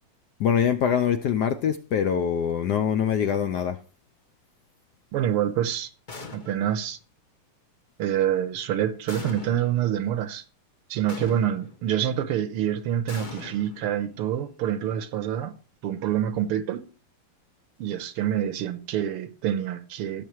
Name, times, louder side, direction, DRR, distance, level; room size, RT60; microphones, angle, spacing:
voice 1, 0.4-3.8, left 8 dB, 70° left, 1.0 m, -24 dB
voice 2, 5.1-5.9 6.3-7.0 8.0-10.4 10.9-15.6 15.8-16.9 17.8-20.2, right 10 dB, 90° right, 1.9 m, -26 dB
sound 1, 6.1-6.8 9.1-9.9 11.1-11.9 13.1-14.3, left 4 dB, 35° left, 0.7 m, -41 dB
17.0 x 7.4 x 3.1 m
omnidirectional pair, 2.4 m